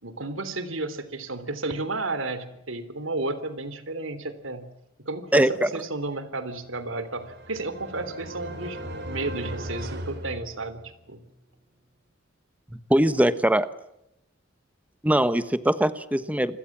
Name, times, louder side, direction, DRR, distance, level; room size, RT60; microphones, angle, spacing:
voice 1, 0.0-4.7 5.0-8.8 9.1-11.2, right 2 dB, 85° right, 13 dB, 3.4 m, -32 dB
voice 2, 5.3-5.7 12.9-13.7 15.0-16.6, right 1 dB, 5° right, 12 dB, 1.2 m, -21 dB
sound 1, 6.7-11.1, equal, 55° right, 4.0 m, -37 dB
28.5 x 22.0 x 7.5 m, 0.83 s
head